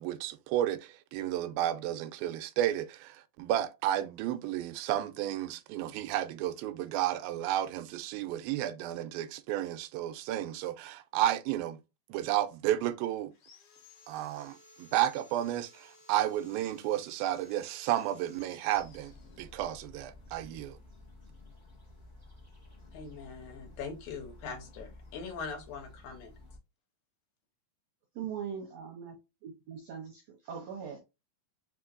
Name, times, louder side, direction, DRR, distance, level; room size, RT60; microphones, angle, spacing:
voice 1, 0.0-11.8 12.1-13.3 14.1-20.8, right 13 dB, 90° right, 2.4 m, -32 dB
Sawing, 13.3-19.8, left 2 dB, 65° left, 2.6 m, -58 dB
sound 1, 18.7-26.6, left 2 dB, 40° left, 0.6 m, -53 dB
voice 2, 22.9-26.3, left 5 dB, 80° left, 2.9 m, -42 dB
voice 3, 28.2-29.1 29.4-31.0, right 7 dB, 75° right, 1.5 m, -40 dB
5.8 x 3.0 x 2.5 m
omnidirectional pair, 4.1 m